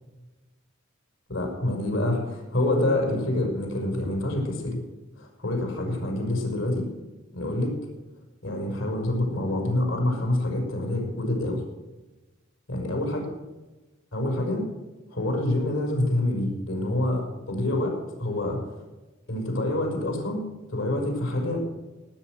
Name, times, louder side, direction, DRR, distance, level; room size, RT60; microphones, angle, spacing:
voice 1, 1.3-4.8 5.2-6.8 7.3-7.8 8.4-11.6 12.7-13.3 14.1-14.6 15.1-18.7 19.3-21.6, left 1 dB, 80° left, 1 dB, 5.5 m, -27 dB
18.0 x 9.3 x 6.4 m, 1.1 s
head